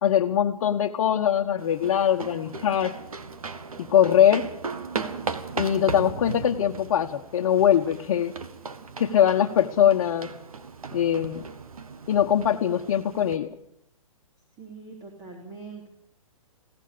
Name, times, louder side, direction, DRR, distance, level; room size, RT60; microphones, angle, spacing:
voice 1, 0.0-2.9 3.8-4.5 5.6-8.3 9.0-10.3 10.9-11.4 12.1-13.5, left 9 dB, 50° left, 1 dB, 1.3 m, -22 dB
sound 1, 1.6-13.4, right 4 dB, 80° right, 2.0 m, -37 dB
voice 2, 14.6-15.9, right 4 dB, 20° right, 2 dB, 3.7 m, -42 dB
21.5 x 17.5 x 6.9 m, 0.71 s
hypercardioid pair, 135°, 18 cm